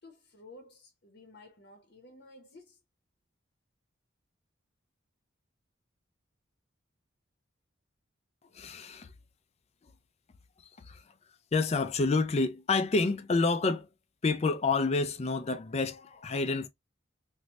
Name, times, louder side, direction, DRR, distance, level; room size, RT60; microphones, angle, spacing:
voice 1, 0.0-2.8, left 2 dB, 55° left, 0.8 m, -53 dB
voice 2, 8.5-9.1 10.8-11.0 11.5-13.9 14.2-16.7, left 3 dB, 30° left, 0.4 m, -28 dB
3.0 x 2.6 x 2.9 m
head